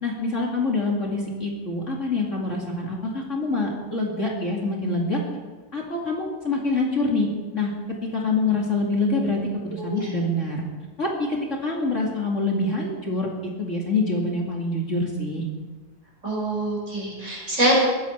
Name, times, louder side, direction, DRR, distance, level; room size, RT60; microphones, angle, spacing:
voice 1, 0.0-5.2 5.7-7.3 7.5-7.7 8.1-10.6 11.0-15.4, left 2 dB, 40° left, -2 dB, 2.7 m, -25 dB
voice 2, 9.8-10.1 16.2-17.7, right 1 dB, 40° right, -3 dB, 6.2 m, -25 dB
20.0 x 15.0 x 4.6 m, 1.4 s
omnidirectional pair, 2.0 m